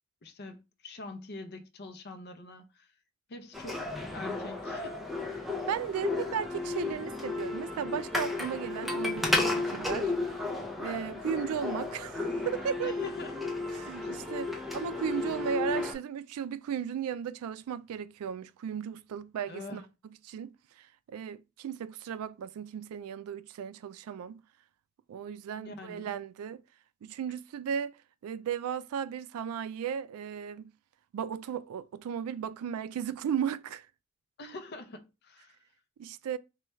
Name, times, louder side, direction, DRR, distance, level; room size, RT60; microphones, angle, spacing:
voice 1, 0.2-2.9 3.3-5.4 12.8-13.5 14.0-14.3 19.5-19.9 25.6-26.1 34.4-35.6, left 2 dB, 50° left, 0.5 m, -45 dB
sound 1, 3.5-15.9, left 2 dB, ahead, 0.5 m, -33 dB
voice 2, 5.7-10.1 10.8-13.0 13.7-20.5 20.8-24.3 25.1-26.6 27.0-28.0 28.2-30.7 31.1-33.9 36.0-36.4, right 8 dB, 85° right, 0.3 m, -35 dB
4.4 x 2.2 x 3.0 m
head